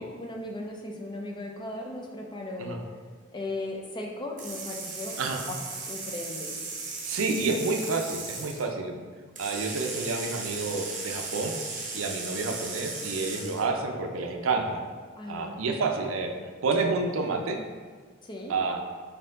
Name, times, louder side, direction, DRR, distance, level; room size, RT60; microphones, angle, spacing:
voice 1, 0.0-2.9 3.3-5.2 5.5-6.5 15.2-15.8 18.2-18.5, left 2 dB, 20° left, 1 dB, 0.4 m, -37 dB
sound 1, 4.4-8.6 9.4-13.7, right 3 dB, 40° right, 0.7 m, -36 dB
voice 2, 7.0-9.0 9.4-11.6 11.9-14.8 15.3-16.3 16.6-17.6 18.5-18.8, right 3 dB, 80° right, 4 dB, 0.5 m, -29 dB
4.3 x 2.7 x 3.7 m, 1.5 s
head